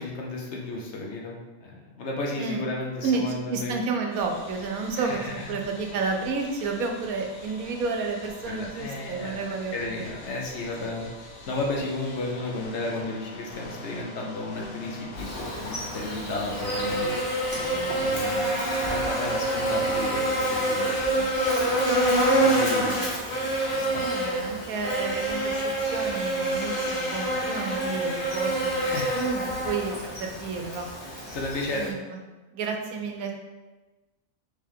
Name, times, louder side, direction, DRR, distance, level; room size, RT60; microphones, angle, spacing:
voice 1, 0.0-3.8 5.0-5.5 8.5-11.0 11.5-17.2 18.0-22.9 23.7-24.0 28.8-29.2 31.3-31.9, left 2 dB, 60° left, -1 dB, 0.9 m, -34 dB
voice 2, 2.3-2.6 3.0-10.0 17.6-19.1 22.6-30.9 31.7-32.2 32.5-33.3, right 4 dB, 80° right, 3 dB, 1.1 m, -32 dB
sound 1, 4.1-18.1, left 1 dB, 85° left, 1.4 m, -44 dB
Buzz, 15.2-31.9, right 1 dB, 40° left, 1.4 m, -27 dB
4.4 x 3.3 x 3.6 m, 1.2 s
omnidirectional pair, 1.5 m